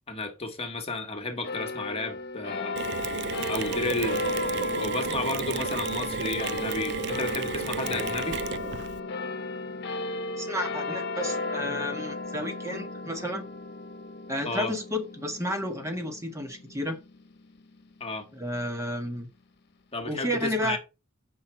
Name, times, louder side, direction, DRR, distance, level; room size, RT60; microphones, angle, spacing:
voice 1, 0.1-2.8 3.5-4.2 4.8-8.4 14.4-14.7 18.0-18.3 19.9-20.8, left 2 dB, 30° left, 1.3 m, -32 dB
sound 1, 1.4-18.2, left 2 dB, 50° left, 1.2 m, -34 dB
Mechanisms, 2.8-9.0, right 7 dB, 55° right, 0.4 m, -33 dB
voice 2, 10.4-13.4 14.3-17.0 18.3-19.3 20.0-20.8, equal, 15° right, 1.2 m, -32 dB
7.3 x 5.6 x 4.4 m
head